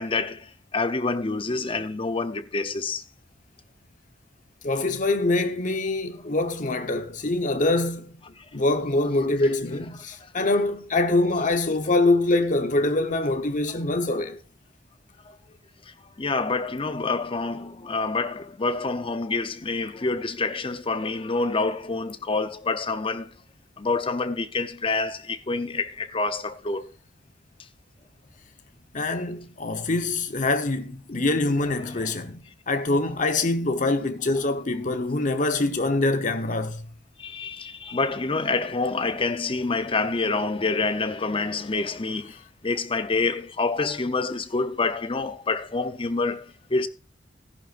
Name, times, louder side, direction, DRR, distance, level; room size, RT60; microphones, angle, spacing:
voice 1, 0.0-3.0 10.2-10.3 13.7-13.8 16.2-23.3 23.8-26.8 37.2-46.9, left 3 dB, 30° left, 0.7 m, -27 dB
voice 2, 4.6-8.1 8.5-14.4 28.9-36.9, left 2 dB, 45° left, 1.1 m, -24 dB
14.5 x 11.0 x 2.6 m
head